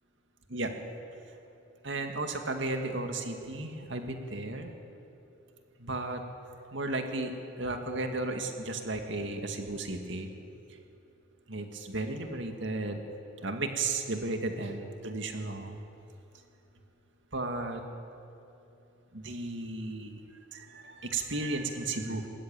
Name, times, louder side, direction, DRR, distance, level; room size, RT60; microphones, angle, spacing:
voice 1, 1.8-4.7 5.8-6.2 6.7-7.3 7.6-10.3 11.5-13.0 13.4-15.8 17.3-17.8 19.1-20.2 20.5-22.3, right 2 dB, 65° right, 5 dB, 2.2 m, -34 dB
20.0 x 19.5 x 9.1 m, 2.9 s
head